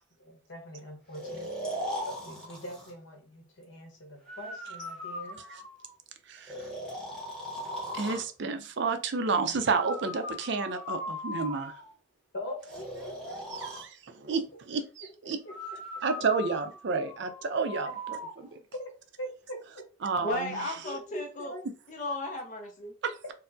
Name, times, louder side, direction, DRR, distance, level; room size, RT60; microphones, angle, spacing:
voice 1, 0.2-1.5 2.1-5.4 8.6-8.7 12.3-13.2 15.4-15.6 16.4-16.5 17.9-18.0 18.7-19.8 20.8-21.6 23.2-23.3, equal, 60° left, 2 dB, 1.0 m, -42 dB
Breathing, 1.1-2.9 4.3-5.9 6.5-8.3 9.6-11.9 12.7-13.9 15.5-18.3, equal, 5° left, 1.0 m, -39 dB
voice 2, 7.9-11.8 13.5-14.4 14.7-15.4 16.0-18.6 20.0-20.7 23.0-23.1, right 4 dB, 60° right, 8 dB, 0.4 m, -31 dB
voice 3, 20.2-21.5 21.9-22.9, left 1 dB, 40° left, 3 dB, 0.4 m, -34 dB
4.2 x 2.0 x 2.6 m, 0.35 s
head